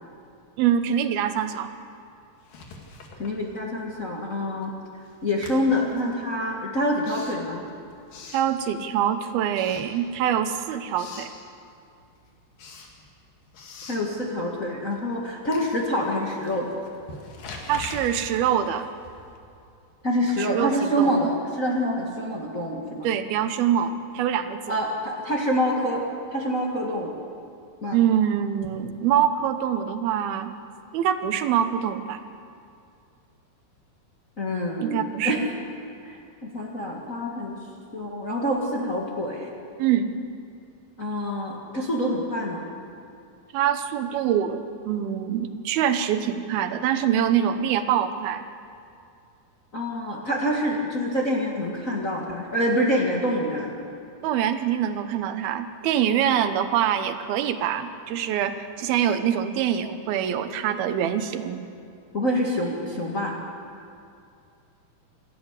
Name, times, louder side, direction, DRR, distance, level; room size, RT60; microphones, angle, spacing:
voice 1, 0.6-1.7 8.3-11.3 17.7-18.9 20.4-21.2 23.0-24.8 27.9-30.5 30.9-32.2 34.8-35.5 39.8-40.1 43.5-48.5 54.2-61.6, right 9 dB, 90° right, 9 dB, 2.9 m, -24 dB
Writing, 2.4-4.0 4.3-9.1 9.5-10.5 10.7-11.4 11.8-19.5, left 3 dB, 65° left, 3.7 m, -44 dB
voice 2, 3.2-4.7 5.2-7.6 13.9-16.7 20.0-23.1 24.7-26.0 26.3-27.1 27.8-28.0 34.4-35.4 36.0-36.2 36.5-37.6 37.9-39.5 41.0-42.6 49.7-53.7 62.1-63.4, equal, 35° left, -2 dB, 1.4 m, -26 dB
28.0 x 12.5 x 8.2 m, 2.5 s
omnidirectional pair, 4.2 m